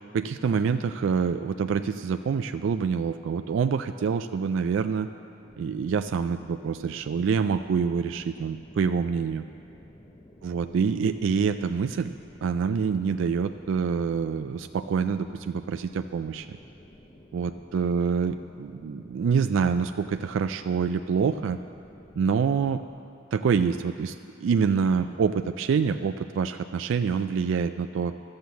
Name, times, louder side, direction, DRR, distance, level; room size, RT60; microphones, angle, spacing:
voice 1, 0.1-5.1 5.6-9.4 10.4-12.1 12.4-16.6 17.3-21.6 22.2-22.8 23.3-24.2 24.4-28.1, right 6 dB, 70° right, 8 dB, 0.3 m, -26 dB
sound 1, 5.4-22.9, left 1 dB, 20° left, 0.9 m, -52 dB
12.0 x 7.8 x 6.9 m, 2.6 s
head